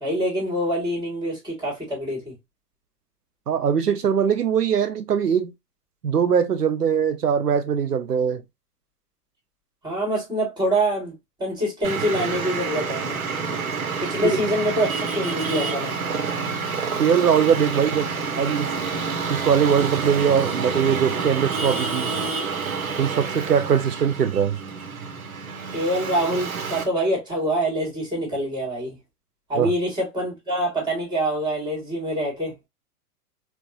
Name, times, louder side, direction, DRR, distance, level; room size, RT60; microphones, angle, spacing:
voice 1, 0.0-2.3 9.8-13.2 14.0-16.0 25.7-29.0 29.5-32.6, equal, 10° right, 1.8 m, -25 dB
voice 2, 3.5-5.5 6.0-8.4 17.0-18.1 18.4-18.7 19.3-22.1 23.0-24.6 29.5-29.7, right 7 dB, 85° right, 0.6 m, -21 dB
Traffic noise roadway noise, 11.8-26.8, right 5 dB, 60° right, 1.2 m, -28 dB
4.3 x 2.4 x 2.5 m
figure-of-eight pair, 110°, 46 cm